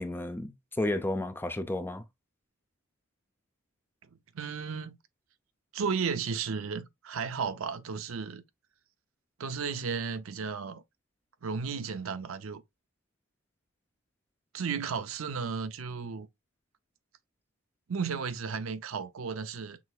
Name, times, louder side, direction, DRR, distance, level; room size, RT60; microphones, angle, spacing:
voice 1, 0.0-2.0, left 1 dB, 10° left, 0.4 m, -32 dB
voice 2, 4.3-5.0 5.7-8.4 9.4-10.8 11.4-12.6 14.5-16.3 17.9-19.8, right 5 dB, 80° right, 0.6 m, -34 dB
6.1 x 3.3 x 2.3 m
head